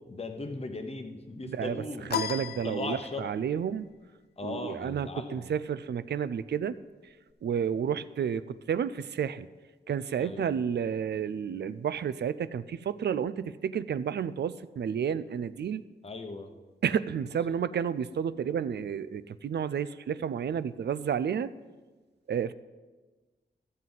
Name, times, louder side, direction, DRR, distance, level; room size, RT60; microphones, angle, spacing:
voice 1, 0.0-2.2 2.6-3.2 4.4-5.6 10.2-10.6 16.0-16.5, left 3 dB, 35° left, 6 dB, 0.9 m, -38 dB
sound 1, 2.1-3.5, left 8 dB, 65° left, 0.4 m, -34 dB
voice 2, 2.1-3.9 4.4-6.8 7.4-9.5 9.9-15.8 16.8-21.5 22.3-22.5, right 8 dB, 70° right, 15 dB, 0.4 m, -31 dB
14.0 x 7.4 x 3.9 m, 1.3 s
wide cardioid pair, 125°, 18 cm